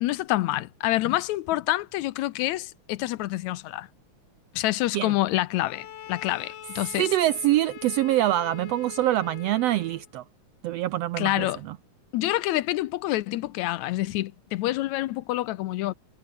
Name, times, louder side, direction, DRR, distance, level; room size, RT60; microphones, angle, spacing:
voice 1, 0.0-3.9 4.5-7.1 11.2-11.6 12.1-15.9, left 16 dB, 80° left, 1.9 m, -27 dB
Bowed string instrument, 5.5-10.1, left 11 dB, 65° left, 2.3 m, -43 dB
voice 2, 7.0-10.2 10.6-11.7, right 14 dB, 90° right, 1.4 m, -25 dB
omnidirectional pair, 3.5 m